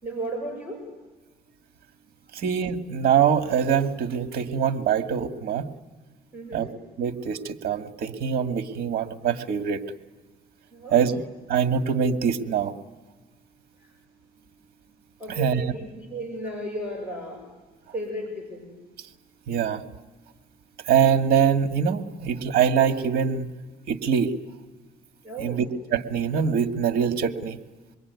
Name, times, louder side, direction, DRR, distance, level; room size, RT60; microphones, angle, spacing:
voice 1, 0.0-0.8 6.3-6.7 10.7-11.1 15.2-17.4 17.9-18.7 25.2-25.7, right 1 dB, 10° right, 0 dB, 7.0 m, -34 dB
voice 2, 2.3-5.7 6.5-6.7 7.0-9.8 10.9-11.2 11.5-12.7 15.3-15.6 19.5-19.8 20.9-23.5 23.9-24.3 25.4-25.7 25.9-27.6, right 7 dB, 65° right, 8 dB, 2.0 m, -23 dB
27.5 x 22.0 x 9.6 m, 1.2 s
cardioid pair, 110°, 17 cm